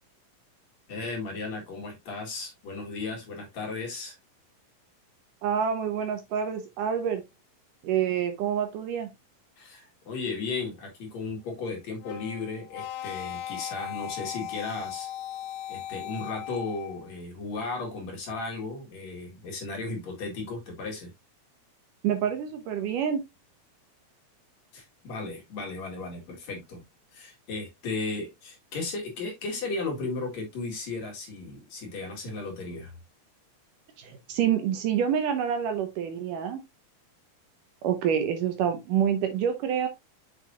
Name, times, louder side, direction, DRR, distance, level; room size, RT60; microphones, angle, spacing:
voice 1, 0.9-4.1 9.6-15.1 15.7-21.1 24.7-26.8 27.1-32.9, left 3 dB, 55° left, 3.1 m, -35 dB
voice 2, 5.4-7.2 7.8-9.1 22.0-23.2 34.0-36.6 37.8-39.9, right 8 dB, 75° right, 2.3 m, -27 dB
sound 1, 12.0-17.1, left 12 dB, 80° left, 2.1 m, -38 dB
6.9 x 6.3 x 2.4 m
omnidirectional pair, 4.2 m